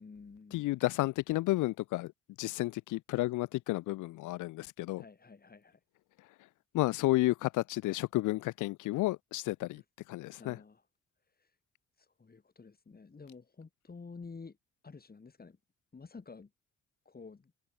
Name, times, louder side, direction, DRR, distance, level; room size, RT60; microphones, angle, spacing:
voice 1, 0.0-0.8 5.0-5.8 9.8-9.9 10.4-10.9 11.4-11.5 12.0-14.6 14.8-15.6 15.9-16.5 17.1-17.5, left 4 dB, 30° left, 7.5 m, -50 dB
voice 2, 0.5-2.1 2.4-5.0 6.7-9.8 10.1-10.6, left 18 dB, 85° left, 0.6 m, -31 dB
cardioid pair, 90°, 30 cm